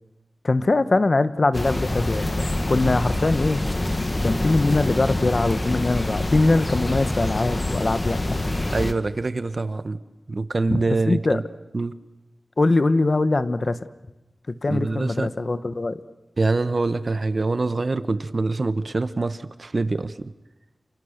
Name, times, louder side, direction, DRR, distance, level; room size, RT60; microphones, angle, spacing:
voice 1, 0.4-3.6 4.2-8.4 10.7-11.4 12.6-13.7 14.6-16.0, left 2 dB, 50° left, 13 dB, 1.2 m, -22 dB
sound 1, 1.5-8.9, left 1 dB, 30° left, 1.8 m, -26 dB
voice 2, 8.7-10.0 10.3-11.4 11.7-11.9 14.7-15.3 16.4-20.3, right 3 dB, 50° right, 13 dB, 1.2 m, -25 dB
29.5 x 27.5 x 6.7 m, 1.0 s
wide cardioid pair, 80°, 0 cm